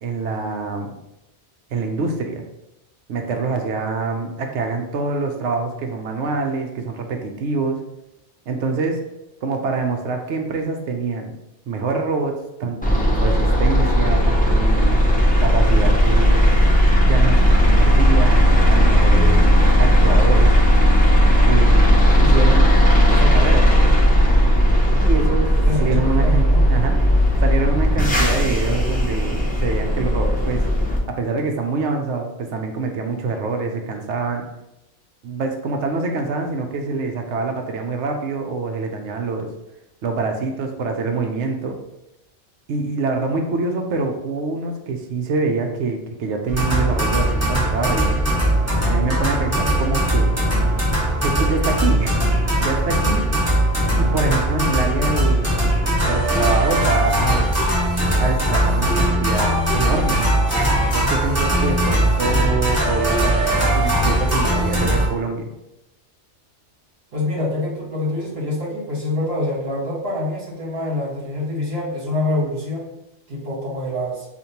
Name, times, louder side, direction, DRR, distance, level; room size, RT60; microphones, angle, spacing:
voice 1, 0.0-0.9 1.7-2.4 3.1-7.8 8.5-9.0 9.4-11.3 11.7-15.0 15.4-16.4 17.0-19.4 19.8-20.5 21.4-22.7 23.1-23.7 25.0-27.0 27.4-30.6 31.1-34.5 35.2-39.5 40.0-41.8 42.7-48.2 48.9-50.3 51.2-52.2 52.6-53.3 54.0-55.5 56.1-57.6 58.2-60.3 60.9-65.5, right 4 dB, 75° right, 4 dB, 0.9 m, -25 dB
sound 1, 12.8-31.0, equal, 10° left, 0.5 m, -15 dB
voice 2, 25.6-26.6 67.1-72.9 73.3-74.3, left 2 dB, 60° right, -5 dB, 1.5 m, -25 dB
sound 2, 46.5-65.1, right 1 dB, 15° right, 1.2 m, -19 dB
5.0 x 2.5 x 2.8 m, 0.90 s
omnidirectional pair, 1.2 m